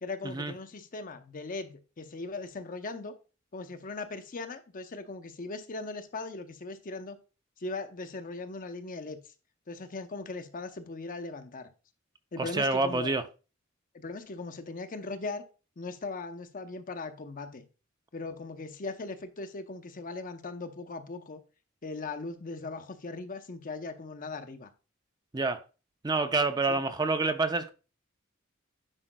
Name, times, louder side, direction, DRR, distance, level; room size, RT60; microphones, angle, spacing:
voice 1, 0.0-3.1 3.5-7.2 7.6-9.2 9.7-11.7 12.3-13.1 13.9-15.4 15.8-17.6 18.1-21.4 21.8-24.7 26.7-26.8, left 3 dB, 40° left, 0.7 m, -39 dB
voice 2, 12.4-13.2 25.3-25.6 26.0-27.7, right 3 dB, 20° right, 0.5 m, -27 dB
9.8 x 5.0 x 2.2 m
head